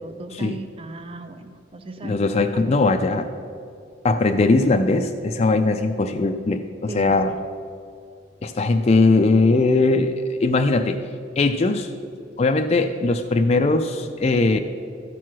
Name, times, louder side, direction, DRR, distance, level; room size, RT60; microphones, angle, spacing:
voice 1, 0.0-2.8 6.9-7.4, right 3 dB, 30° right, 8 dB, 0.5 m, -37 dB
voice 2, 2.0-3.3 4.0-7.3 8.4-10.2 10.4-11.0 11.4-11.9 12.4-14.6, left 3 dB, 35° left, 5 dB, 0.4 m, -20 dB
13.0 x 4.6 x 6.1 m, 2.4 s
head